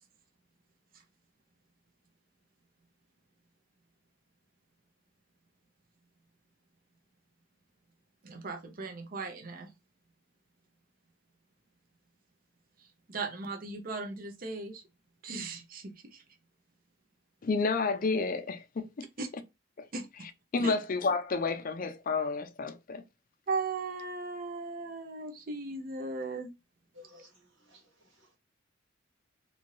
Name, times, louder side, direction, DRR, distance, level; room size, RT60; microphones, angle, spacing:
voice 1, 8.2-9.7 12.8-14.8 15.2-16.2 19.2-19.3 19.9-20.3 20.6-20.8 23.5-26.5, right 3 dB, 45° right, 0.6 m, -37 dB
voice 2, 17.4-19.1 19.8-19.9 20.5-23.0, left 4 dB, 45° left, 0.4 m, -30 dB
voice 3, 26.9-28.4, left 2 dB, 70° right, 1.3 m, -57 dB
2.7 x 2.5 x 3.0 m
head